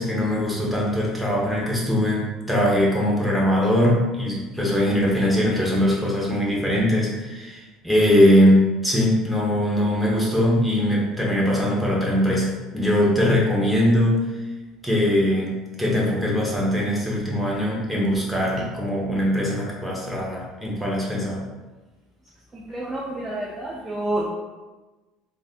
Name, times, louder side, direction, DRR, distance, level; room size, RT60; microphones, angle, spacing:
voice 1, 0.0-14.2 14.8-21.4, equal, ahead, -4 dB, 1.0 m, -21 dB
voice 2, 22.5-24.3, right 1 dB, 20° right, -4 dB, 0.5 m, -29 dB
3.2 x 2.6 x 2.5 m, 1.2 s
supercardioid pair, 95°, 0 cm